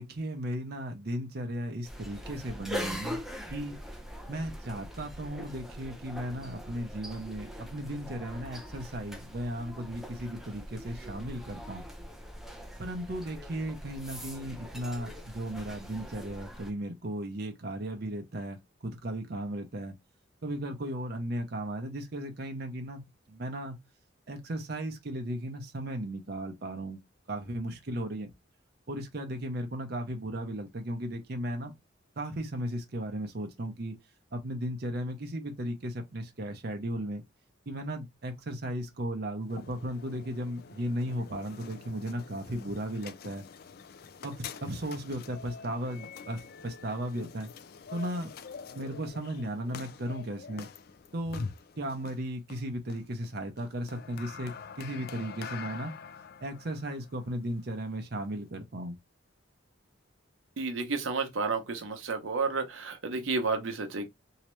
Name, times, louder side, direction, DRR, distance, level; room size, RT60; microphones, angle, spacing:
voice 1, 0.0-3.2 3.5-3.8 4.3-11.8 12.8-18.6 18.8-19.9 20.4-23.8 24.3-27.0 27.3-28.3 28.9-31.7 32.2-34.0 34.3-37.2 37.7-43.4 44.2-47.5 47.9-48.3 48.7-50.7 51.1-51.5 51.8-55.9 56.4-59.0, right 1 dB, 55° right, 0.7 m, -36 dB
sound 1, 1.8-16.7, equal, ahead, 0.5 m, -42 dB
sound 2, 39.4-58.5, left 6 dB, 50° left, 0.3 m, -46 dB
voice 2, 60.6-64.1, right 4 dB, 85° right, 0.7 m, -31 dB
3.0 x 2.8 x 3.1 m
head